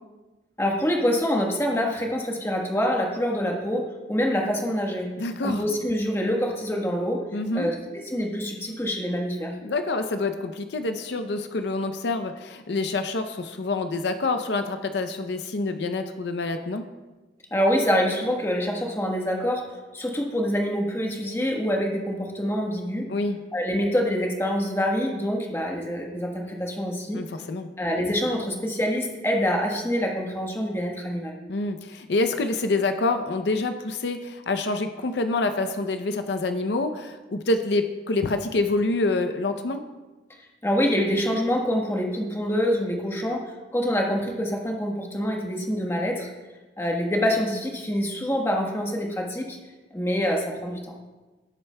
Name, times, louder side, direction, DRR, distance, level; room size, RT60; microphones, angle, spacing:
voice 1, 0.6-5.1 5.4-7.2 7.5-7.7 8.1-9.5 17.5-19.7 19.9-23.1 23.5-27.2 27.8-31.3 40.6-46.3 46.8-49.6 49.9-50.9, equal, 15° left, 0 dB, 1.2 m, -26 dB
voice 2, 5.2-5.6 7.3-7.7 9.6-16.8 23.1-23.4 27.1-27.7 31.5-39.8, left 2 dB, 75° left, 7 dB, 0.6 m, -27 dB
16.5 x 7.9 x 2.2 m, 1.2 s
head